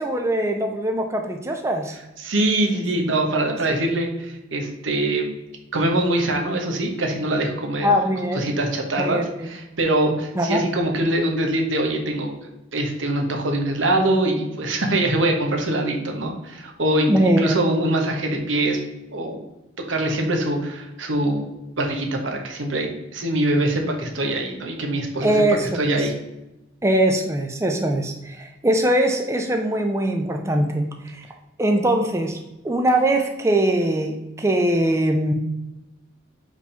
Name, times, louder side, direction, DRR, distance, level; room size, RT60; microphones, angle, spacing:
voice 1, 0.0-1.9 3.5-3.6 7.8-8.4 9.0-9.5 10.4-10.6 17.1-17.6 25.2-25.8 26.8-31.3 31.6-32.4 32.6-35.3, right 1 dB, 15° right, 4 dB, 0.4 m, -21 dB
voice 2, 2.2-5.3 5.7-7.9 8.3-12.3 12.7-18.8 19.1-19.4 19.9-21.5 21.8-25.4 25.7-26.1, right 1 dB, 85° right, 2 dB, 1.1 m, -23 dB
4.9 x 3.5 x 5.5 m, 0.93 s
head